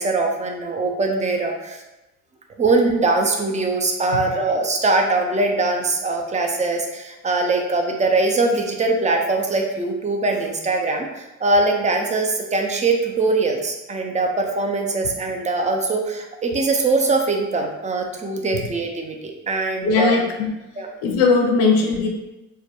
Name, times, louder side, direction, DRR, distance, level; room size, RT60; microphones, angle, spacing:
voice 1, 0.0-1.8 2.6-20.1 20.8-20.9, right 3 dB, 20° right, 2 dB, 0.4 m, -22 dB
voice 2, 19.8-20.5 21.0-22.1, left 4 dB, 65° left, 2 dB, 0.5 m, -19 dB
2.2 x 2.2 x 2.9 m, 0.98 s
hypercardioid pair, 55°, 41 cm